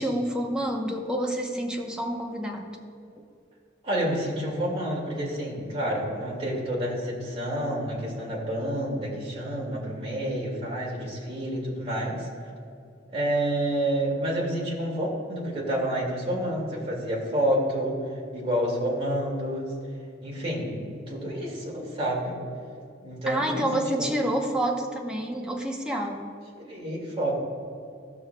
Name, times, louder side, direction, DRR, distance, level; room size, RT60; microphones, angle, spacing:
voice 1, 0.0-2.7 23.3-26.3, right 1 dB, 5° right, 0 dB, 0.8 m, -28 dB
voice 2, 3.8-12.3 13.1-18.0 18.3-19.7 20.2-22.4 23.0-23.7 24.0-24.1 26.6-27.3, right 1 dB, 30° right, -4 dB, 2.1 m, -29 dB
18.0 x 6.2 x 2.2 m, 2.4 s
head